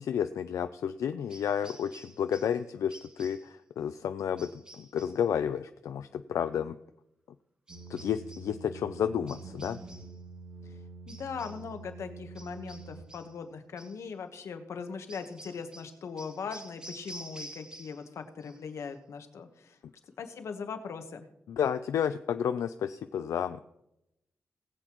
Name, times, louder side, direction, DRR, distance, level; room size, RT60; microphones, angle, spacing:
voice 1, 0.0-6.8 7.9-9.8 21.5-23.6, left 8 dB, 85° left, 10 dB, 0.4 m, -31 dB
sound 1, 1.3-2.6 2.9-3.5 4.4-5.2 7.7-8.5 9.3-10.2 11.1-11.7 12.4-13.4 13.8-14.0 15.1-18.1 18.4-18.9, right 1 dB, 15° right, 0.8 m, -50 dB
sound 2, 7.7-13.1, right 3 dB, 80° right, 2.2 m, -47 dB
voice 2, 11.1-19.7 20.2-21.2, left 5 dB, 65° left, 7 dB, 1.2 m, -40 dB
19.5 x 8.0 x 3.0 m, 0.84 s
wide cardioid pair, 160°, 5 cm